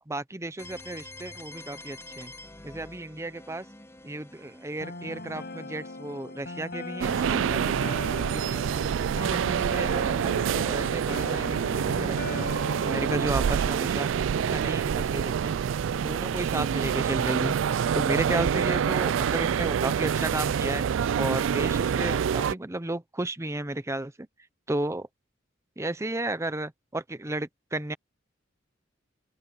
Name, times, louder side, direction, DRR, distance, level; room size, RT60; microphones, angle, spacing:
voice 1, 0.1-2.3 2.6-3.7 4.0-8.0 8.3-8.6 9.1-12.6 12.8-14.1 14.5-15.6 15.9-17.5 17.9-20.8 21.2-24.3 24.7-25.1 25.8-27.9, right 2 dB, 15° right, 0.8 m, -33 dB
sound 1, 0.6-10.3, left 2 dB, 15° left, 4.4 m, -49 dB
sound 2, 4.8-13.5, left 2 dB, 55° left, 6.7 m, -39 dB
sound 3, 7.0-22.5, right 7 dB, 85° right, 0.3 m, -26 dB
open air
head